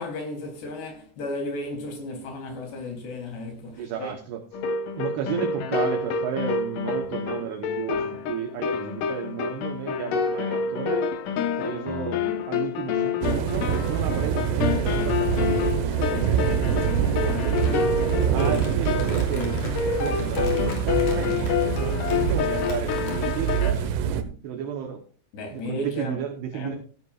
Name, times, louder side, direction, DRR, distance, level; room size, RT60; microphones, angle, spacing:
voice 1, 0.0-4.1 25.3-26.2 26.5-26.8, left 1 dB, 60° left, 5.2 m, -34 dB
voice 2, 3.6-4.4 4.9-11.1 11.6-17.9 18.3-23.8 24.4-25.0 25.5-26.7, right 8 dB, 70° right, 2.7 m, -33 dB
sound 1, 4.5-23.7, left 6 dB, 90° left, 1.8 m, -28 dB
sound 2, 13.2-24.2, right 8 dB, 90° right, 3.6 m, -25 dB
Crumpling crinkling, 17.4-24.0, left 3 dB, 45° left, 3.9 m, -40 dB
16.5 x 12.5 x 2.5 m
omnidirectional pair, 5.7 m